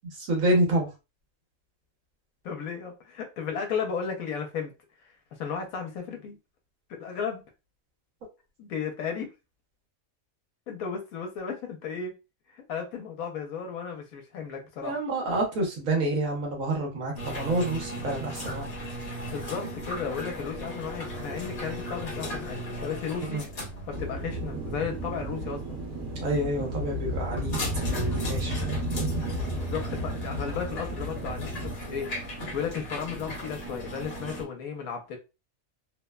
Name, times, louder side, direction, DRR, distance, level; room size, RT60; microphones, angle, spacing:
voice 1, 0.2-0.9 14.8-18.7 23.2-23.4 26.2-28.7, right 1 dB, 75° right, 1.3 m, -28 dB
voice 2, 2.4-4.7 5.0-5.1 5.4-6.4 6.9-7.4 8.6-9.3 10.7-12.2 12.5-15.0 19.3-23.4 23.9-25.8 29.5-35.2, left 6 dB, 85° left, 1.1 m, -34 dB
sound 1, 17.2-34.4, equal, 50° left, 1.0 m, -37 dB
sound 2, 23.9-31.7, right 1 dB, 55° right, 1.3 m, -32 dB
3.0 x 2.1 x 2.2 m
omnidirectional pair, 1.5 m